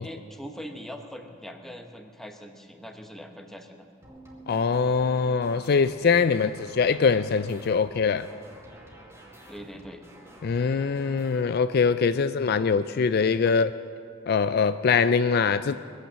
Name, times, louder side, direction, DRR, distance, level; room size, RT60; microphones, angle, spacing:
voice 1, 0.0-3.9 9.5-10.0, equal, ahead, 4 dB, 1.0 m, -42 dB
sound 1, 4.0-11.4, right 1 dB, 15° right, 2.1 m, -49 dB
voice 2, 4.5-8.3 10.4-13.7 14.3-15.8, left 5 dB, 50° left, 12 dB, 0.4 m, -23 dB
21.5 x 9.0 x 7.4 m, 2.3 s
head